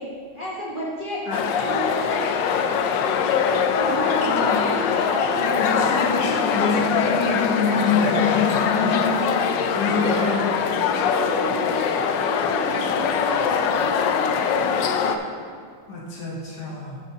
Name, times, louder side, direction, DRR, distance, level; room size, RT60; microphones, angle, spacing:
voice 1, 0.0-1.2 1.6-2.3 3.5-5.5 9.8-10.4 11.2-14.7, equal, 30° right, -7 dB, 1.2 m, -31 dB
sound 1, 1.3-15.2, left 6 dB, 75° left, 1.1 m, -22 dB
voice 2, 4.3-4.7 5.4-10.5 15.9-17.0, left 4 dB, 55° left, -3 dB, 1.5 m, -25 dB
12.5 x 7.2 x 2.8 m, 2.1 s
omnidirectional pair, 2.3 m